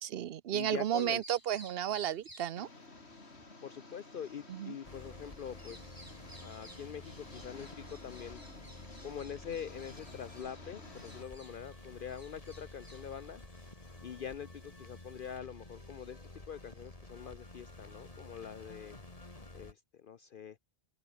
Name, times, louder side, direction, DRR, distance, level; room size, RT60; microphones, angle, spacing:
voice 1, 0.0-2.7 4.5-4.8, right 10 dB, 70° right, 0.8 m, -33 dB
voice 2, 0.5-1.2 3.6-8.4 9.0-13.4 14.0-19.0 19.5-20.6, left 8 dB, 55° left, 0.8 m, -44 dB
Bird vocalization bird call bird song, 0.7-18.1, right 1 dB, 20° right, 4.5 m, -60 dB
Engine, 2.6-11.2, left 3 dB, 80° left, 3.7 m, -53 dB
sound 1, 4.8-19.7, left 2 dB, 35° left, 2.8 m, -51 dB
omnidirectional pair, 1.1 m